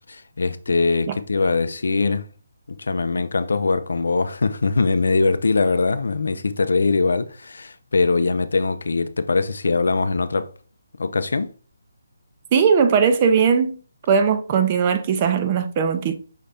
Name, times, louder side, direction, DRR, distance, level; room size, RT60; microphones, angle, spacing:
voice 1, 0.1-2.3 2.7-10.5 11.0-11.5, left 3 dB, 75° left, 0.4 m, -22 dB
voice 2, 12.5-13.8 14.1-16.2, right 6 dB, 25° right, 0.4 m, -19 dB
5.6 x 2.6 x 3.4 m
hypercardioid pair, 165°, 0 cm